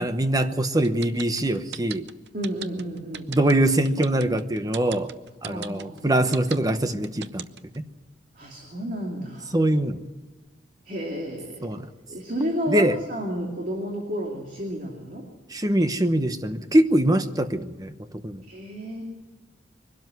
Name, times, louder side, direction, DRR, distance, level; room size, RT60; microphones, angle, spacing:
voice 1, 0.0-2.1 3.3-5.1 5.4-7.5 7.7-7.8 9.5-10.0 11.6-11.9 12.7-13.0 15.5-17.9 18.2-18.4, right 1 dB, 20° right, 9 dB, 0.9 m, -23 dB
sound 1, 0.8-7.8, right 8 dB, 65° right, 0.7 m, -37 dB
voice 2, 2.3-3.3 5.4-6.2 8.3-9.6 10.9-11.7 12.1-15.2 18.5-19.0, equal, 45° right, 0 dB, 2.6 m, -31 dB
23.0 x 12.5 x 9.5 m, 1.3 s
head